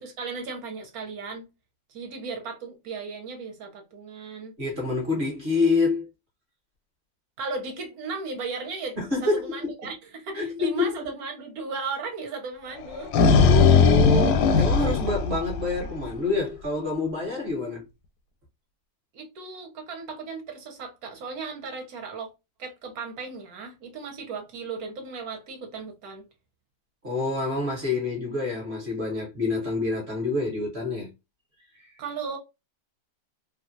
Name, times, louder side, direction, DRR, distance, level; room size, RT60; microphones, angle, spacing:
voice 1, 0.0-1.4 1.9-4.5 7.4-13.1 19.1-22.3 22.6-26.3 32.0-32.4, right 4 dB, 60° right, 1.2 m, -36 dB
voice 2, 4.6-6.1 9.0-9.7 10.3-11.0 13.4-17.9 27.0-31.1 31.8-32.0, left 3 dB, 40° right, 1.1 m, -27 dB
sound 1, 12.8-16.0, left 5 dB, 85° left, 1.3 m, -19 dB
3.0 x 2.4 x 2.6 m
omnidirectional pair, 1.9 m